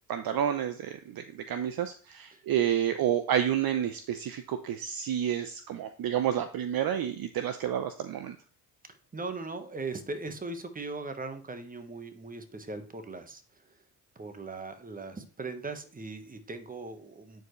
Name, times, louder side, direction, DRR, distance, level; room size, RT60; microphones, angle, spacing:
voice 1, 0.1-8.4, right 10 dB, 50° right, 9 dB, 0.7 m, -30 dB
voice 2, 8.9-13.6 14.1-17.4, right 3 dB, 20° right, 8 dB, 1.2 m, -39 dB
9.2 x 4.6 x 3.1 m, 0.39 s
hypercardioid pair, 60°, 47 cm